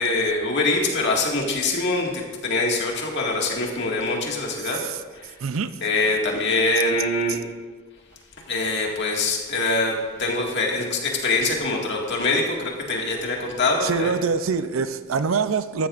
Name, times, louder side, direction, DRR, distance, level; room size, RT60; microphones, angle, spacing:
voice 1, 0.0-4.8 5.1-5.3 5.8-7.4 8.5-14.1, left 2 dB, 60° left, 2.0 m, -24 dB
voice 2, 13.8-15.9, right 5 dB, 85° right, 0.6 m, -24 dB
13.5 x 13.0 x 2.5 m
head